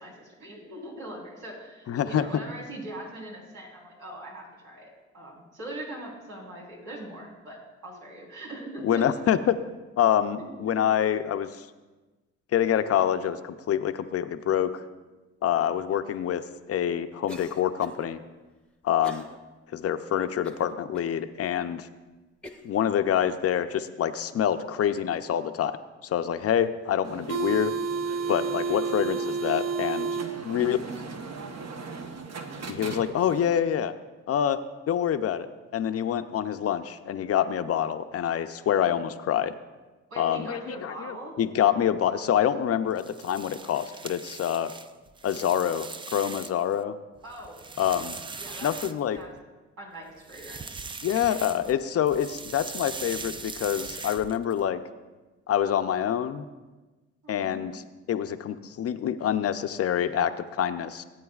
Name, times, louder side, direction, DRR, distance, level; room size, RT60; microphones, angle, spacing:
voice 1, 0.0-9.3 10.4-10.8 40.1-41.3 47.2-47.6 48.4-48.9 49.1-49.3 49.8-50.8 57.2-57.7, right 1 dB, 80° right, -3 dB, 3.8 m, -41 dB
voice 2, 1.9-2.2 8.8-9.5 10.0-11.6 12.5-14.8 15.4-16.4 16.7-18.2 18.8-19.2 19.7-21.9 22.6-25.8 26.0-27.7 28.3-30.8 32.7-33.9 34.3-34.6 34.9-35.5 35.7-39.5 40.2-44.7 45.2-46.9 47.8-48.2 48.6-49.2 51.0-54.8 55.5-56.5 57.3-57.8 58.1-61.0, left 9 dB, 50° left, 10 dB, 0.6 m, -26 dB
Cough, 17.3-18.1 19.0-19.4 19.8-19.9 20.4-21.1 21.7-21.8 22.4-22.8, left 1 dB, 5° left, 0.9 m, -44 dB
sound 1, 27.0-33.5, right 5 dB, 60° right, 1.1 m, -32 dB
sound 2, 42.9-46.7 47.2-49.4 50.2-51.8 52.1-54.6, right 4 dB, 15° right, 0.3 m, -40 dB
17.5 x 8.7 x 2.4 m, 1.2 s
cardioid pair, 90°, 30 cm